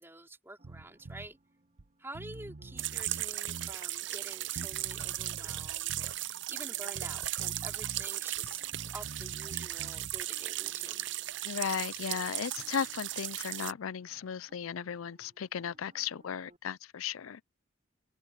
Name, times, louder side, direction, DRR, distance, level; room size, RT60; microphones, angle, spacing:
voice 1, 0.0-1.4 2.0-11.1, right 1 dB, 10° right, 3.8 m, -48 dB
sound 1, 0.6-16.6, right 1 dB, 35° right, 3.8 m, -64 dB
Bass guitar, 0.6-1.3 1.8-1.9 2.1-3.8 4.6-6.2 6.9-8.1 8.4-10.2, right 2 dB, 75° right, 1.0 m, -46 dB
sound 2, 2.8-13.7, right 15 dB, 60° right, 0.6 m, -37 dB
voice 2, 11.4-17.4, left 7 dB, 80° left, 0.5 m, -36 dB
open air
head